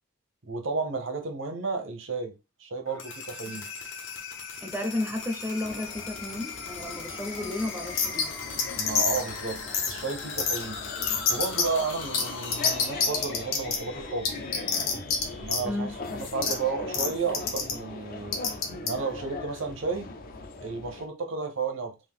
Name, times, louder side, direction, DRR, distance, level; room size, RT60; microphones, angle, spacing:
voice 1, 0.4-2.3 2.6-3.7 8.8-10.8 11.3-14.3 15.4-18.4 18.8-20.1 20.6-21.9, right 4 dB, 70° right, 0.8 m, -32 dB
sound 1, 2.9-16.7, left 4 dB, 65° left, 0.9 m, -40 dB
voice 2, 4.6-8.3 15.6-15.9, left 2 dB, 10° right, 0.5 m, -33 dB
sound 2, 5.6-21.1, left 3 dB, 45° left, 0.5 m, -40 dB
sound 3, 8.0-8.2 8.6-9.2 9.7-9.9 10.4-10.6 11.0-11.6 12.1-12.2 12.5-13.8 14.2-15.2 15.5-15.6 16.4-16.5 16.9-17.1 17.3-17.7 18.3-18.9, left 6 dB, 90° left, 1.0 m, -25 dB
3.6 x 2.5 x 3.6 m
head